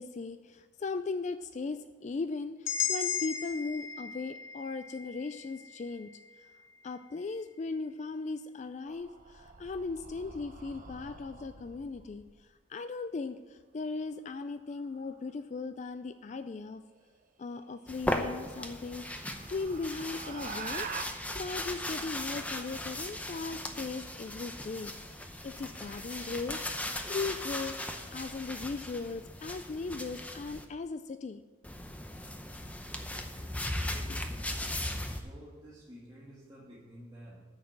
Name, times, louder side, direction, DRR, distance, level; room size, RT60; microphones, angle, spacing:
voice 1, 0.0-6.1 6.8-16.8 17.4-27.8 28.1-31.4 33.9-34.2, left 4 dB, 35° left, 11 dB, 0.3 m, -38 dB
sound 1, 2.7-6.7, left 7 dB, 70° left, 1.1 m, -36 dB
sound 2, 8.9-12.4 14.7-15.2 17.2-17.3 17.8-17.9 18.4-21.0, right 5 dB, 40° right, 0.7 m, -45 dB
sound 3, 17.9-30.6 31.6-35.2, left 1 dB, 5° left, 0.7 m, -38 dB
voice 2, 35.0-37.4, equal, 20° right, -9 dB, 2.0 m, -51 dB
9.3 x 6.5 x 7.1 m, 1.5 s
head